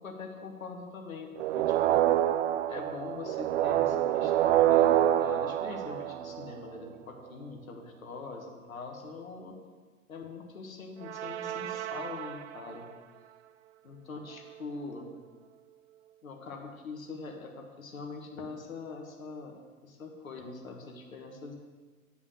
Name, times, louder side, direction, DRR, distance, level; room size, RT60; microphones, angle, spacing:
voice 1, 0.0-2.1 2.7-9.6 10.1-12.9 13.8-15.1 16.2-21.5, left 4 dB, 75° left, 1 dB, 1.5 m, -43 dB
sound 1, 1.4-6.7 11.0-12.7, right 12 dB, 55° right, 0.6 m, -27 dB
9.9 x 5.5 x 6.4 m, 1.4 s
figure-of-eight pair, 90°, 41 cm